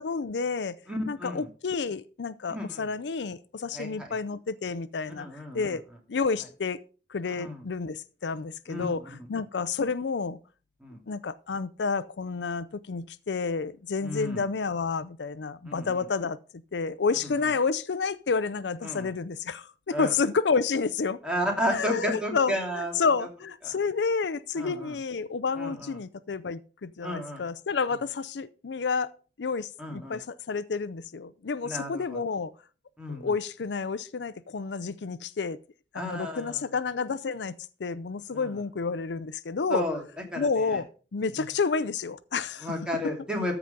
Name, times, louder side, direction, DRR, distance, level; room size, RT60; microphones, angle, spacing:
voice 1, 0.0-0.8 1.1-5.8 6.1-6.8 7.1-10.4 11.1-16.4 16.7-21.2 21.7-29.1 29.4-32.5 33.1-35.6 35.9-37.5 37.8-39.8 40.4-40.9 41.1-42.7, left 5 dB, 85° left, 0.5 m, -30 dB
voice 2, 0.9-1.5 2.5-2.9 3.7-4.1 5.2-5.7 7.4-7.6 8.7-8.9 10.8-11.0 14.0-14.4 15.7-16.1 18.8-19.1 19.9-20.1 21.2-22.9 24.6-24.9 25.6-25.9 27.0-27.4 29.8-30.2 31.6-32.2 33.0-33.3 36.0-36.6 38.3-38.4 39.7-40.0 40.3-40.8 42.6-43.6, equal, 5° right, 2.5 m, -32 dB
13.5 x 4.9 x 5.3 m
head